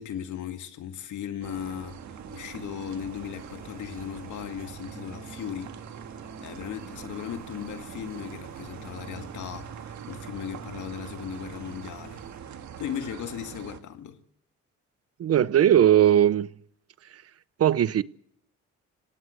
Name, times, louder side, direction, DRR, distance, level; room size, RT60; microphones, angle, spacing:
voice 1, 0.0-5.8 6.4-12.2 12.8-14.2, left 9 dB, 75° left, 2.0 m, -37 dB
sound 1, 1.4-13.8, right 9 dB, 70° right, 2.0 m, -43 dB
sound 2, 2.0-12.4, right 5 dB, 30° right, 4.5 m, -47 dB
voice 2, 15.2-16.5 17.6-18.0, right 11 dB, 50° right, 0.8 m, -19 dB
24.5 x 17.5 x 6.4 m
cardioid pair, 90°, 30 cm